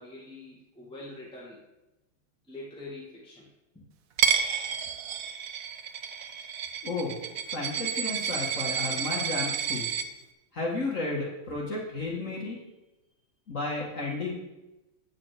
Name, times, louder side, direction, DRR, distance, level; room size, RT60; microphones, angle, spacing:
voice 1, 0.0-1.6 2.5-3.5 3.7-3.8, left 2 dB, 5° left, -6 dB, 1.9 m, -44 dB
Coin (dropping), 4.2-10.0, right 7 dB, 60° right, 0.9 m, -30 dB
voice 2, 6.8-7.2 7.5-9.9 10.5-12.6 13.5-14.3, left 3 dB, 40° left, -3 dB, 1.9 m, -32 dB
8.8 x 6.3 x 7.6 m, 1.0 s
omnidirectional pair, 2.2 m